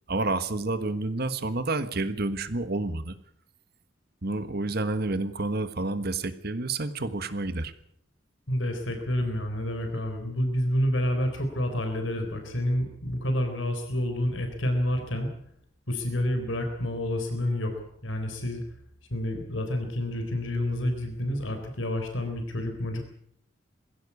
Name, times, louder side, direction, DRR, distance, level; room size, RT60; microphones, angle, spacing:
voice 1, 0.1-3.1 4.2-7.7, right 2 dB, 55° right, 11 dB, 1.4 m, -29 dB
voice 2, 8.5-15.3 15.9-18.6 19.1-23.1, left 1 dB, 80° left, 5 dB, 3.9 m, -29 dB
21.5 x 16.5 x 8.4 m, 0.70 s
head